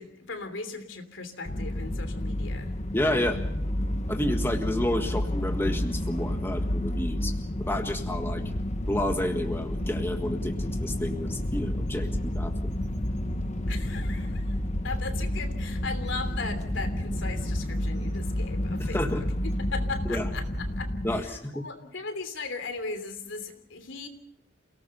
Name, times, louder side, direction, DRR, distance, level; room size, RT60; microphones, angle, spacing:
voice 1, 0.0-2.7 13.7-19.3 19.6-24.1, left 4 dB, 75° left, 8 dB, 3.2 m, -38 dB
sound 1, 1.5-21.2, left 1 dB, 35° left, 1.2 m, -30 dB
voice 2, 2.9-3.4 4.1-7.3 7.6-8.4 8.9-12.8 18.8-19.2 20.1-20.3 21.0-21.7, left 1 dB, 10° left, 4 dB, 1.7 m, -30 dB
sound 2, 11.3-20.9, right 1 dB, 20° right, 4.6 m, -43 dB
28.5 x 18.5 x 5.7 m, 0.71 s
head